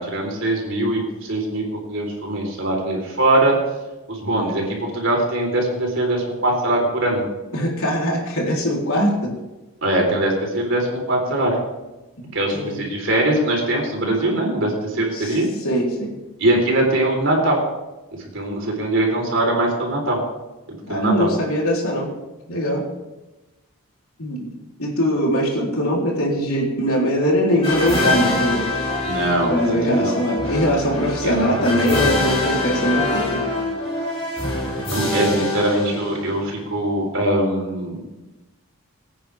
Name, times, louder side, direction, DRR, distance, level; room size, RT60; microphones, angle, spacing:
voice 1, 0.0-3.6 4.1-7.2 9.8-11.5 12.3-15.5 16.4-17.6 18.3-20.2 20.9-21.3 29.0-30.2 34.9-38.0, right 1 dB, 60° right, 0 dB, 4.0 m, -21 dB
voice 2, 7.5-9.3 12.2-12.8 15.1-15.4 15.6-16.1 20.9-22.1 22.5-22.9 24.2-24.5 24.8-28.7 29.4-33.4, equal, 75° left, -2 dB, 3.7 m, -21 dB
sound 1, 27.6-36.5, left 1 dB, 25° left, 3.4 m, -24 dB
23.0 x 9.3 x 3.5 m, 1.1 s
head